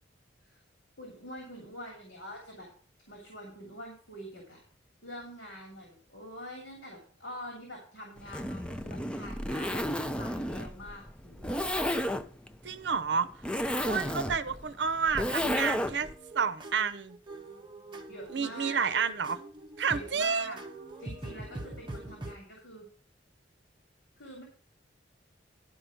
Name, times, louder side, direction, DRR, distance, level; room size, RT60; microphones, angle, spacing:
voice 1, 1.0-2.7 3.1-4.6 5.0-11.7 18.1-18.9 19.9-20.6 21.0-22.9 24.2-24.4, equal, 75° left, 2.9 m, -45 dB
Zipper (clothing), 8.2-16.1, left 1 dB, 5° left, 0.4 m, -32 dB
voice 2, 12.6-13.3 13.8-16.1 16.3-17.2 18.3-19.4 19.8-20.6, right 6 dB, 65° right, 0.7 m, -30 dB
sound 1, 16.0-22.4, right 2 dB, 25° right, 1.1 m, -44 dB
11.0 x 4.8 x 6.2 m
head